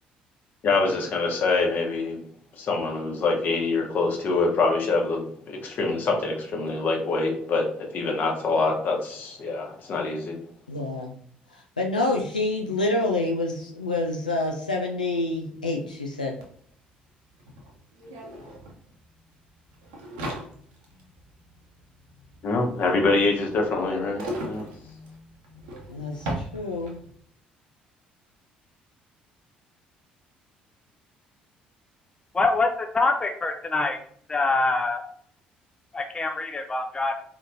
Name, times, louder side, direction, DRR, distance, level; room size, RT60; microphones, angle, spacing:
voice 1, 0.6-2.2 2.6-10.3 22.4-24.6, left 3 dB, 45° left, 1 dB, 1.1 m, -25 dB
voice 2, 10.7-11.2 11.5-16.4 25.9-27.0, left 2 dB, 85° left, 1 dB, 0.3 m, -27 dB
sound 1, 16.4-16.5 16.7-27.2, right 1 dB, 65° right, 0.9 m, -39 dB
voice 3, 32.3-34.0 34.3-35.0 35.9-37.1, left 3 dB, 20° left, 5 dB, 0.5 m, -24 dB
4.3 x 3.5 x 2.6 m, 0.62 s
figure-of-eight pair, 50°, 4 cm